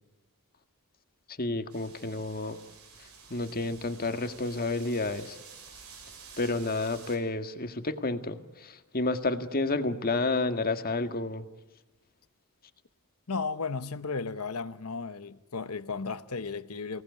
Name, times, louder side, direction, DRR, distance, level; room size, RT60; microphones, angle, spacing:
voice 1, 1.4-2.6 3.3-5.4 6.4-11.4, left 2 dB, 40° left, 1.8 m, -30 dB
sound 1, 1.7-7.2, right 5 dB, 70° right, 6.9 m, -50 dB
voice 2, 13.3-17.0, left 4 dB, 75° left, 1.0 m, -34 dB
29.5 x 18.5 x 9.6 m
head